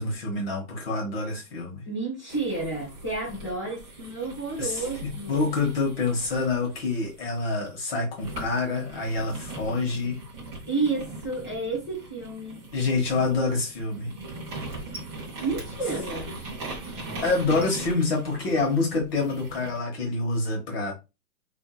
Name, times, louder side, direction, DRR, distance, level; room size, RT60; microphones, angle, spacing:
voice 1, 0.0-1.8 4.6-4.8 5.3-10.2 12.7-14.1 17.2-20.9, left 3 dB, 45° left, 0.9 m, -27 dB
voice 2, 1.9-5.5 10.7-12.6 15.3-16.3, right 3 dB, 15° left, 0.4 m, -31 dB
sound 1, 2.3-7.7 8.2-19.8, right 2 dB, 15° right, 0.7 m, -40 dB
2.7 x 2.5 x 2.3 m
hypercardioid pair, 135°, 43 cm